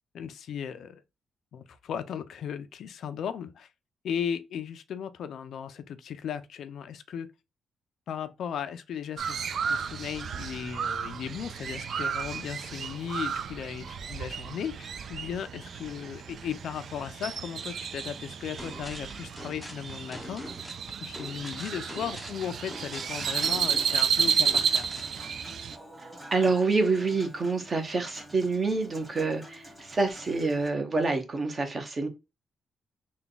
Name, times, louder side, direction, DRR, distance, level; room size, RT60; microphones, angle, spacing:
voice 1, 0.1-1.0 1.5-3.7 4.0-7.3 8.1-20.4 21.0-24.9, left 8 dB, 70° left, 0.4 m, -36 dB
Crow, 9.2-25.8, right 7 dB, 55° right, 0.3 m, -32 dB
sound 1, 18.6-25.1, left 1 dB, 10° left, 0.6 m, -44 dB
Human voice / Acoustic guitar / Piano, 22.7-30.7, right 1 dB, 10° right, 1.3 m, -48 dB
voice 2, 26.0-32.1, right 3 dB, 30° right, 0.9 m, -27 dB
3.5 x 2.3 x 3.8 m
cardioid pair, 140°, 0 cm